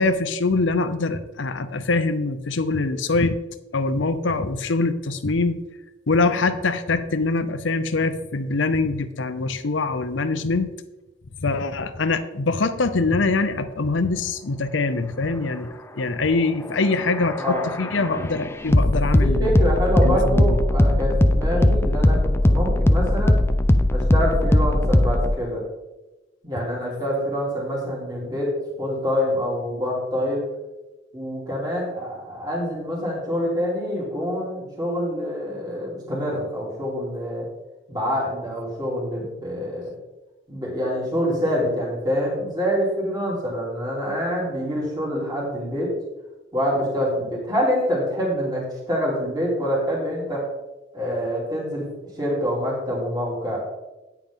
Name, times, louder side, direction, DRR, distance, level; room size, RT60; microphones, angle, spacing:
voice 1, 0.0-3.4 3.7-5.6 6.1-10.7 11.4-15.7 15.9-19.5 20.0-20.6, left 3 dB, 75° left, 11 dB, 0.7 m, -23 dB
sound 1, 16.7-25.3, left 1 dB, 15° left, 0.4 m, -19 dB
voice 2, 19.2-23.4 23.9-25.6 26.4-30.4 31.1-37.5 37.9-40.0 40.5-45.9 46.5-50.4 50.9-51.9 52.2-53.6, equal, 20° right, -4 dB, 3.1 m, -26 dB
9.6 x 8.9 x 3.7 m, 1.0 s
head